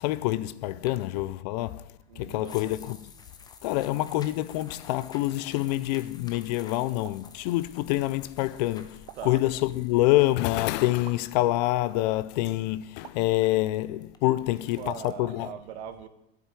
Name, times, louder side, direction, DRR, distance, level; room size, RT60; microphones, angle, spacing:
voice 1, 0.0-3.1 3.6-15.5, left 17 dB, 45° left, 0.5 m, -26 dB
sound 1, 0.8-15.1, left 5 dB, 15° left, 0.8 m, -52 dB
voice 2, 2.1-2.8 9.1-9.4 14.5-16.1, right 9 dB, 80° right, 1.6 m, -41 dB
sound 2, 7.0-7.3 9.1-9.4 11.1-11.3 13.0-13.3, right 13 dB, 35° right, 0.7 m, -48 dB
9.5 x 8.4 x 9.8 m
supercardioid pair, 170°, 31 cm